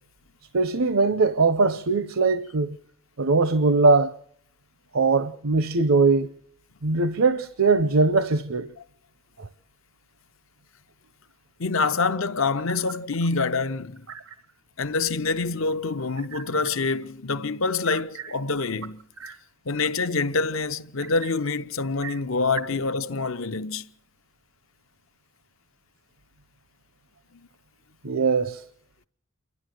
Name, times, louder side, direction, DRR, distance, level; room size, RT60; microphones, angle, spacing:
voice 1, 0.5-2.8 3.2-4.1 4.9-6.3 6.8-8.7 9.4-9.5 14.1-14.2 19.2-19.4 22.0-22.1 28.0-28.6, right 3 dB, 70° right, 0.7 m, -21 dB
voice 2, 11.6-14.1 14.8-19.0 19.7-23.9, left 4 dB, 70° left, 0.8 m, -26 dB
28.5 x 12.0 x 7.8 m
head